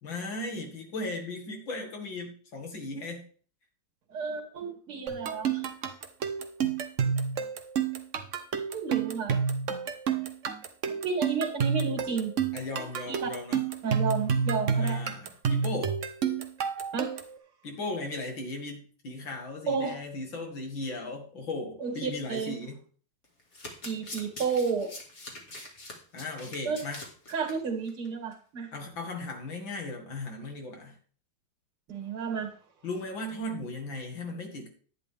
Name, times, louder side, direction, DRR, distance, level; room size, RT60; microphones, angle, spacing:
voice 1, 0.0-3.2 12.5-13.6 14.8-16.0 17.6-22.8 26.1-27.0 28.7-31.0 32.8-34.7, left 2 dB, 65° left, 3 dB, 2.8 m, -37 dB
voice 2, 4.1-5.6 8.7-9.4 11.0-12.3 13.1-13.3 13.8-15.0 16.9-17.1 19.7-20.0 21.8-22.5 23.8-24.9 26.6-26.8 27.3-28.7 31.9-32.5, right 5 dB, 90° right, 2 dB, 3.1 m, -31 dB
sound 1, 5.1-17.4, right 6 dB, 50° right, 0.9 m, -29 dB
Domestic sounds home sounds, 23.2-27.5 27.9-28.1 28.3-28.4, left 2 dB, 35° left, 2.2 m, -43 dB
11.0 x 9.9 x 3.5 m, 0.42 s
omnidirectional pair, 2.3 m